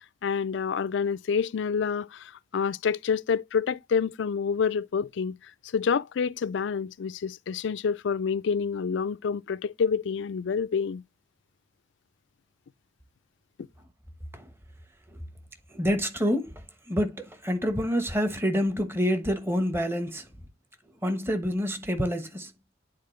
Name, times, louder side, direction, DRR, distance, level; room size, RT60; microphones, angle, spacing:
voice 1, 0.2-5.4 5.7-11.0, left 6 dB, 70° left, 0.4 m, -28 dB
voice 2, 15.7-20.3 21.0-22.5, equal, 15° right, 1.1 m, -27 dB
9.6 x 4.2 x 3.1 m
head